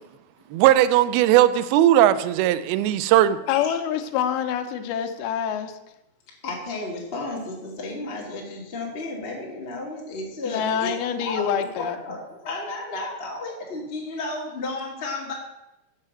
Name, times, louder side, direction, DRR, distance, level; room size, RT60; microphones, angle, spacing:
voice 1, 0.5-3.4, right 12 dB, 85° right, 2.5 m, -18 dB
voice 2, 3.5-5.8 10.4-12.0, left 8 dB, 85° left, 2.8 m, -26 dB
voice 3, 6.4-10.9 11.2-15.3, left 2 dB, 25° left, 1.3 m, -33 dB
7.2 x 6.6 x 7.6 m
omnidirectional pair, 4.3 m